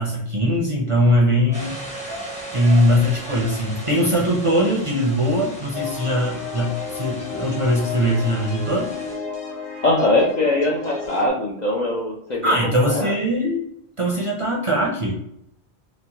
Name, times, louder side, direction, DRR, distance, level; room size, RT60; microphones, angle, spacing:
voice 1, 0.0-1.8 2.5-8.9 12.4-13.6 14.0-15.1, equal, 40° right, -3 dB, 0.5 m, -21 dB
sound 1, 1.5-9.1, equal, 10° left, 0.5 m, -38 dB
sound 2, 1.5-6.0, right 4 dB, 70° right, 0.9 m, -38 dB
sound 3, 5.7-11.3, left 5 dB, 85° left, 1.0 m, -32 dB
voice 2, 9.8-13.1, left 2 dB, 55° left, -2 dB, 0.5 m, -22 dB
3.0 x 2.1 x 2.8 m, 0.75 s
omnidirectional pair, 1.1 m